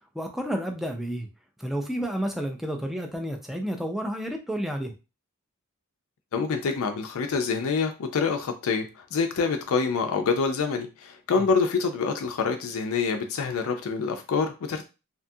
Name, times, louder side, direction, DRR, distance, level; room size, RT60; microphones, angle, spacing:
voice 1, 0.1-1.3 1.6-4.9, equal, ahead, 2 dB, 0.4 m, -30 dB
voice 2, 6.3-14.9, left 5 dB, 70° left, 6 dB, 0.4 m, -26 dB
2.7 x 2.3 x 2.6 m, 0.29 s
head